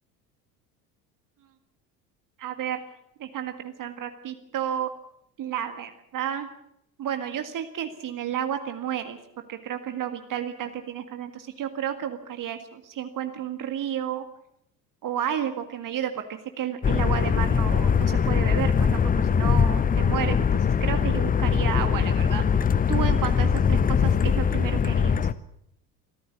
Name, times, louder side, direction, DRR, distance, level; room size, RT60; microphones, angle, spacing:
voice 1, 2.4-2.8 3.2-4.9 5.4-6.5 7.0-9.2 9.5-14.2 15.0-22.4 22.9-25.2, right 9 dB, 40° right, 7 dB, 1.9 m, -31 dB
sound 1, 16.8-25.3, left 6 dB, 15° left, 0.7 m, -22 dB
25.0 x 14.0 x 8.3 m, 0.76 s
figure-of-eight pair, 65°, 49 cm